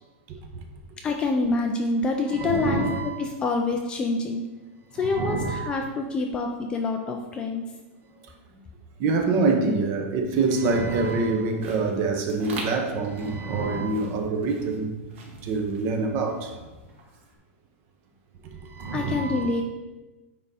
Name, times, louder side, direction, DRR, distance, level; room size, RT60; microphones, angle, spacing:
voice 1, 1.0-2.9 3.2-4.4 4.9-7.6 18.9-19.6, left 3 dB, 15° left, 0.3 m, -26 dB
voice 2, 2.3-3.2 4.9-5.7 9.0-14.9 15.4-16.5 18.6-19.5, right 3 dB, 30° right, 0.7 m, -25 dB
sound 1, 10.1-17.3, right 2 dB, 60° right, 1.7 m, -43 dB
9.5 x 3.6 x 4.1 m
supercardioid pair, 180°, 7 cm